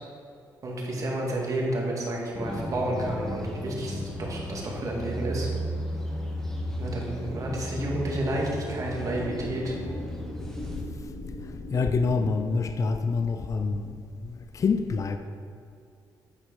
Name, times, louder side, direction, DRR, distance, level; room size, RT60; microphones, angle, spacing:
voice 1, 0.6-5.5 6.8-9.8, right 1 dB, 45° right, -2 dB, 1.9 m, -30 dB
sound 1, 2.3-10.8, equal, 5° left, 1.3 m, -34 dB
sound 2, 6.0-13.4, equal, 90° left, 1.1 m, -41 dB
voice 2, 11.7-14.0 14.5-15.2, left 4 dB, 40° left, 8 dB, 0.5 m, -26 dB
9.0 x 4.1 x 5.3 m, 2.4 s
cardioid pair, 80°, 8 cm